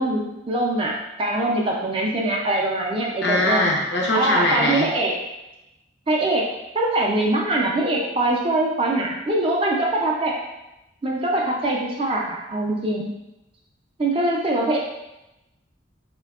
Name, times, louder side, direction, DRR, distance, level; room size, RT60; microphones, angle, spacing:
voice 1, 0.0-3.7 4.1-5.1 6.1-6.5 6.7-10.3 11.0-13.1 14.0-14.8, right 2 dB, 30° right, -1 dB, 0.3 m, -23 dB
voice 2, 3.2-4.9, left 1 dB, 65° left, -1 dB, 0.5 m, -21 dB
3.3 x 2.1 x 2.3 m, 0.94 s
head